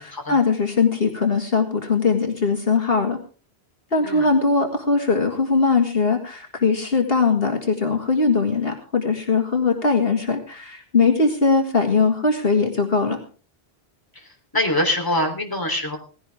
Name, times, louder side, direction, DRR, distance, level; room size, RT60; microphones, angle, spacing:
voice 1, 0.0-3.2 3.9-13.2, left 4 dB, 65° left, 3 dB, 2.2 m, -20 dB
voice 2, 14.5-16.0, left 1 dB, 20° left, 1 dB, 3.5 m, -23 dB
18.0 x 16.0 x 3.5 m, 0.38 s
omnidirectional pair, 1.1 m